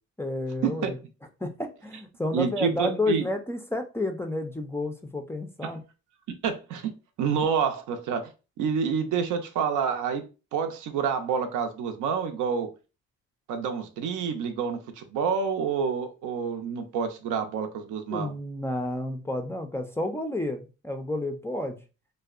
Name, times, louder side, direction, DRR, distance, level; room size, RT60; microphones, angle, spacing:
voice 1, 0.2-1.0 1.4-5.8 18.1-21.8, left 2 dB, 10° left, 0.3 m, -30 dB
voice 2, 2.3-3.3 6.4-6.9 7.2-8.3 8.6-10.2 10.5-12.7 13.5-18.3, right 6 dB, 80° right, 0.5 m, -28 dB
2.6 x 2.1 x 2.3 m
cardioid pair, 90°, 30 cm